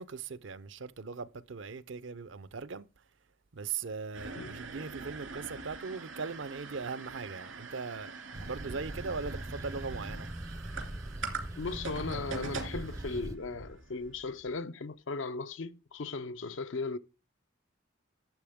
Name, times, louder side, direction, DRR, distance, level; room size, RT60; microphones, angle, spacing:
voice 1, 0.0-2.9 3.5-10.3, right 5 dB, 70° right, 0.6 m, -39 dB
sound 1, 4.1-14.5, right 4 dB, 85° right, 2.5 m, -43 dB
sound 2, 8.3-13.4, right 1 dB, 15° right, 0.4 m, -41 dB
voice 2, 11.6-17.0, left 3 dB, 75° left, 0.6 m, -37 dB
12.0 x 7.6 x 3.6 m
head